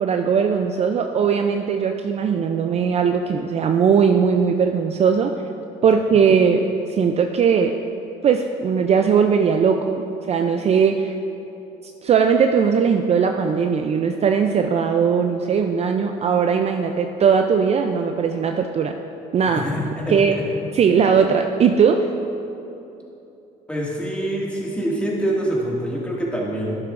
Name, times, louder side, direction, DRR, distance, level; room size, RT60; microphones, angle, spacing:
voice 1, 0.0-5.3 5.8-6.6 6.9-7.7 8.2-11.2 12.0-18.9 19.3-19.7 20.1-20.3 20.7-22.0, right 6 dB, 40° right, 5 dB, 0.4 m, -19 dB
voice 2, 19.5-20.4 23.7-26.8, right 1 dB, 5° left, -4 dB, 2.0 m, -25 dB
11.5 x 10.5 x 2.5 m, 2.9 s
cardioid pair, 110°, 17 cm